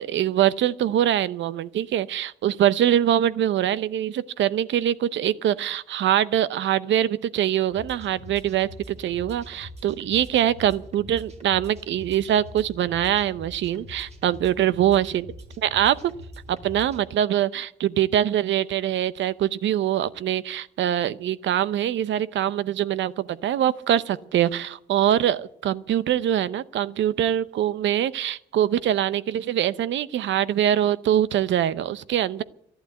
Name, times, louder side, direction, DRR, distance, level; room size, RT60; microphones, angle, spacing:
voice 1, 0.0-15.3 15.6-16.1 16.5-32.4, right 11 dB, 70° right, 17 dB, 0.7 m, -23 dB
sound 1, 7.7-17.0, left 1 dB, 35° right, 2.7 m, -43 dB
12.0 x 11.0 x 9.2 m, 0.71 s
cardioid pair, 90°, 20 cm